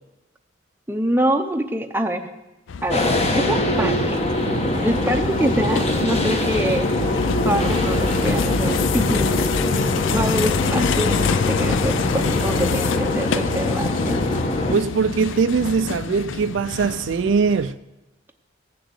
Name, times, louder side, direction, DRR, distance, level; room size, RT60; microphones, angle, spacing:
voice 1, 0.9-2.3 2.8-4.2 4.8-6.9 7.4-9.5 10.1-11.1 11.5-14.2, right 1 dB, 10° right, 0.6 m, -25 dB
sound 1, 2.7-17.7, left 5 dB, 70° left, 0.4 m, -26 dB
sound 2, 2.9-14.8, left 1 dB, 30° left, 1.3 m, -23 dB
voice 2, 14.7-17.8, right 5 dB, 70° right, 0.4 m, -21 dB
15.5 x 6.5 x 7.9 m
head